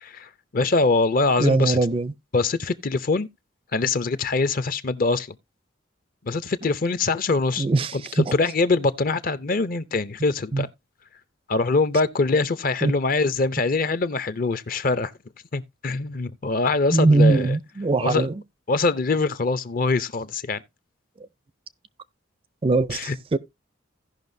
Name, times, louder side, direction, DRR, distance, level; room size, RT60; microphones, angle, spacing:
voice 1, 0.0-1.8 2.3-3.3 3.7-5.4 6.2-7.7 7.9-10.7 11.5-15.1 15.5-17.6 18.0-18.3 18.7-20.6 22.9-23.2, left 3 dB, 45° left, 0.6 m, -23 dB
voice 2, 1.4-2.1 7.6-8.3 10.5-10.7 12.8-12.9 16.9-18.4 22.6-23.4, right 3 dB, 30° right, 0.4 m, -21 dB
16.5 x 5.6 x 2.6 m
head